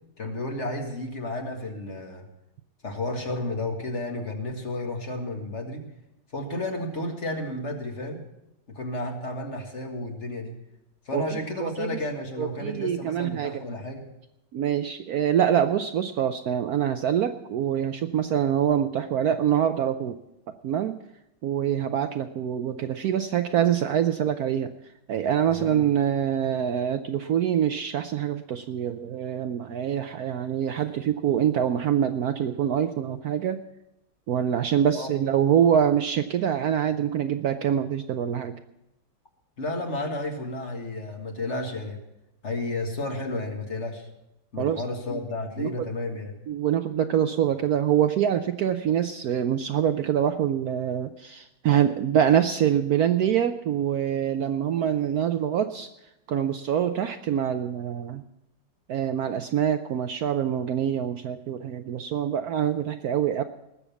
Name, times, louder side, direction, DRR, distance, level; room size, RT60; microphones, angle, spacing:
voice 1, 0.2-2.3 2.8-5.9 6.3-8.2 8.7-10.6 11.1-14.0 25.6-25.8 34.9-35.1 39.6-42.0 42.4-44.1 44.5-46.3, left 2 dB, 40° left, 3 dB, 1.9 m, -32 dB
voice 2, 11.1-12.0 12.4-13.6 14.5-20.2 20.6-21.0 21.4-24.7 25.1-33.6 34.3-38.5 44.6-44.8 45.1-45.2 45.6-45.9 46.5-55.9 56.3-58.2 58.9-63.4, right 9 dB, 65° right, 9 dB, 1.0 m, -25 dB
19.5 x 7.1 x 7.0 m, 0.87 s
omnidirectional pair, 2.0 m